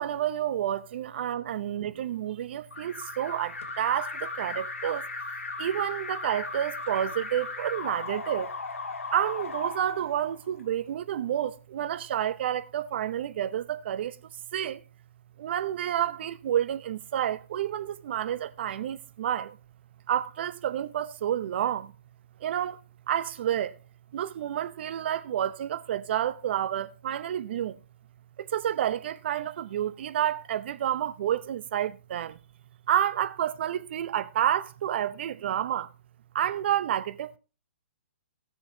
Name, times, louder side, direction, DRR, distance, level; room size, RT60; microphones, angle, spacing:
voice 1, 0.0-8.5 9.1-14.2 14.5-14.8 15.4-19.6 20.1-21.9 22.4-22.8 23.1-23.8 24.1-27.8 28.4-32.4 32.9-35.9 36.3-37.4, right 10 dB, 50° right, 0.8 m, -29 dB
Alarm, 2.7-10.6, left 3 dB, 75° left, 1.7 m, -37 dB
19.0 x 6.8 x 2.8 m
hypercardioid pair, 130°, 7 cm